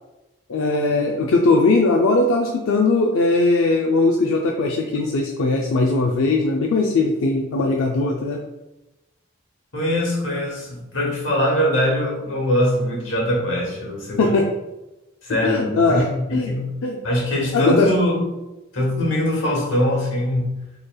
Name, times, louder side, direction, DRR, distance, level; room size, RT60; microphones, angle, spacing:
voice 1, 0.5-8.4 14.2-14.4 15.4-16.0 16.3-16.5 16.8-17.0 17.5-17.9, left 3 dB, 85° left, 1 dB, 0.4 m, -19 dB
voice 2, 9.7-14.4 15.2-16.8 17.0-18.3 18.7-20.6, left 1 dB, 60° left, -3 dB, 1.3 m, -22 dB
4.6 x 3.2 x 2.3 m, 0.99 s
head